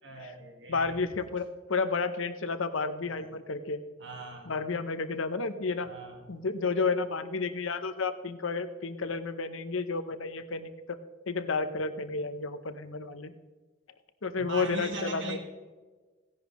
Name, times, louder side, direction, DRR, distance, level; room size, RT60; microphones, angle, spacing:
voice 1, 0.0-1.0 3.1-3.3 4.0-4.6 5.8-6.3 14.4-15.4, right 3 dB, 65° right, 2 dB, 1.9 m, -40 dB
voice 2, 0.7-3.8 4.5-5.9 6.3-11.0 11.3-13.3 14.2-15.4, left 4 dB, 90° left, 11 dB, 0.8 m, -31 dB
16.0 x 10.5 x 3.1 m, 1.4 s
head